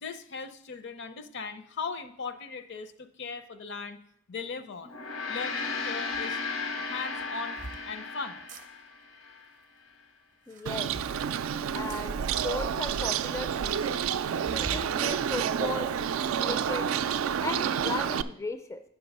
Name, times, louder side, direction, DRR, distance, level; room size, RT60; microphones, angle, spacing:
voice 1, 0.0-4.0 4.3-4.9 5.3-6.4 6.8-7.6 7.8-8.4, left 5 dB, 60° left, 11 dB, 0.6 m, -38 dB
Gong, 4.8-9.4, left 4 dB, 80° left, 1.0 m, -35 dB
sound 1, 6.1-6.2 7.1-7.8 8.4-8.7 10.3-11.2 11.9-12.1 12.7-12.8 13.0-13.1 13.4-13.5 14.4-14.9 15.4-16.3, right 2 dB, 40° right, 0.6 m, -43 dB
voice 2, 10.5-10.9 11.7-13.8 14.5-15.9 16.4-16.9 17.4-18.8, left 2 dB, 15° left, 9 dB, 0.3 m, -36 dB
Bird, 10.7-18.2, right 8 dB, 80° right, 0.3 m, -29 dB
8.4 x 6.0 x 5.4 m, 0.74 s
head